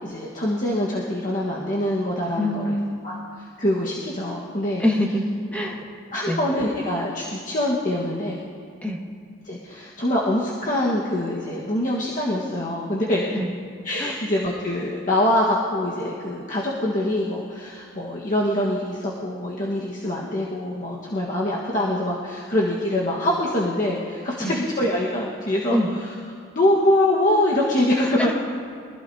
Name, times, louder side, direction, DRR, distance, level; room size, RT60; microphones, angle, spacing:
voice 1, 0.0-2.8 3.0-4.8 6.1-8.4 9.4-13.3 13.8-26.1 26.5-28.3, left 1 dB, 40° left, -5 dB, 1.5 m, -24 dB
voice 2, 2.4-2.9 4.8-5.2 5.5-5.8 6.3-6.4 8.8-9.0 13.3-13.5 14.0-14.1 24.4-24.5 25.7-25.9, left 1 dB, 5° left, -2 dB, 1.8 m, -24 dB
23.5 x 15.5 x 2.8 m, 2.3 s
head